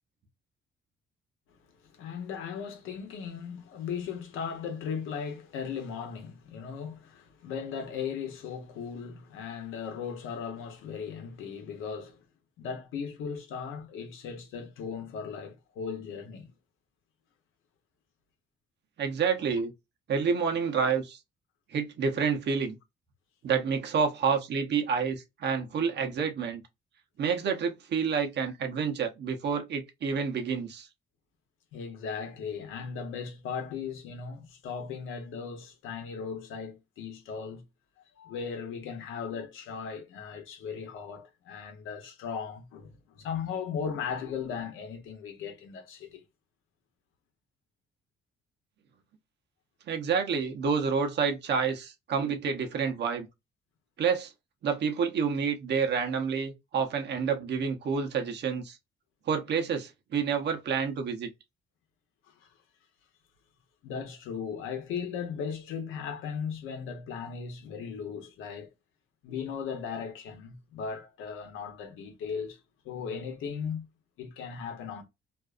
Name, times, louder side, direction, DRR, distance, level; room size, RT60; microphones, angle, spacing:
voice 1, 1.9-12.2 12.6-16.5 31.7-37.6 38.2-46.2 62.3-62.5 63.8-68.7 69.2-72.6 72.8-73.9 74.2-75.0, left 6 dB, 85° left, 0.9 m, -37 dB
voice 2, 19.0-19.7 20.1-21.2 21.7-22.7 23.4-26.6 27.2-30.9 49.9-53.3 54.0-54.3 54.6-58.8 59.3-61.3, right 6 dB, 60° right, 0.8 m, -28 dB
2.6 x 2.3 x 2.4 m
cardioid pair, 90°, 20 cm